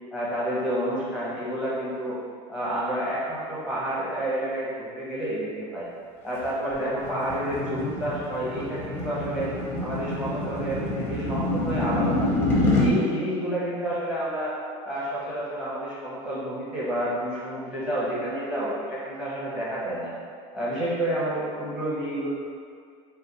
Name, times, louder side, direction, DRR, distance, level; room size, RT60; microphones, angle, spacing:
voice 1, 0.1-2.2 2.5-5.9 6.2-9.5 9.8-12.2 12.6-14.5 14.8-20.1 20.5-22.3, right 1 dB, 5° right, -9 dB, 0.9 m, -29 dB
sound 1, 6.4-12.9, left 2 dB, 15° left, 0.6 m, -27 dB
3.1 x 2.3 x 3.9 m, 2.2 s
supercardioid pair, 150°, 16 cm